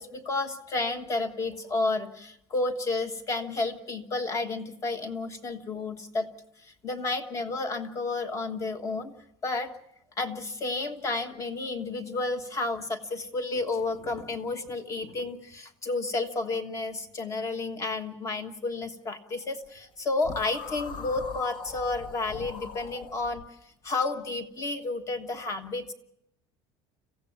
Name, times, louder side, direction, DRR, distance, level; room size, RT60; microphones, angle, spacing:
voice 1, 0.0-6.3 6.6-9.1 9.4-9.7 10.2-23.4 23.8-25.9, left 3 dB, 25° left, 8 dB, 1.4 m, -31 dB
sound 1, 20.2-23.4, left 4 dB, 40° left, 1.3 m, -40 dB
26.5 x 15.5 x 7.2 m, 0.77 s
cardioid pair, 170°, 12 cm